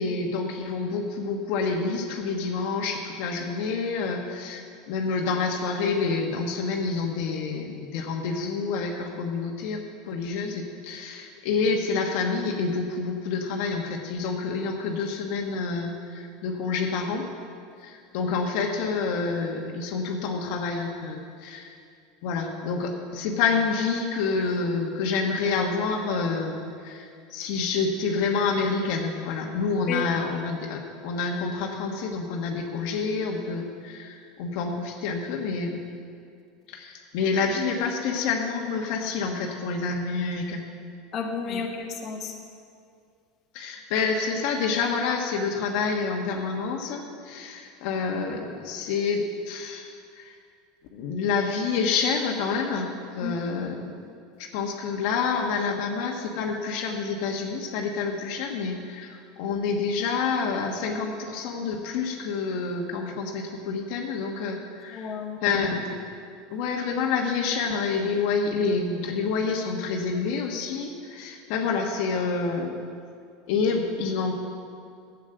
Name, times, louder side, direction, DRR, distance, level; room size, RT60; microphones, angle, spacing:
voice 1, 0.0-17.3 17.8-21.7 22.2-35.8 36.7-40.6 41.5-41.6 43.5-50.4 50.9-53.9 54.4-65.1 65.4-66.0 66.5-72.8 73.5-74.3, left 4 dB, 65° left, 2 dB, 1.3 m, -28 dB
voice 2, 41.1-42.3 53.2-53.4 64.9-65.4, left 6 dB, 40° left, 1 dB, 1.5 m, -31 dB
10.0 x 8.4 x 7.8 m, 2.3 s
supercardioid pair, 130°, 0 cm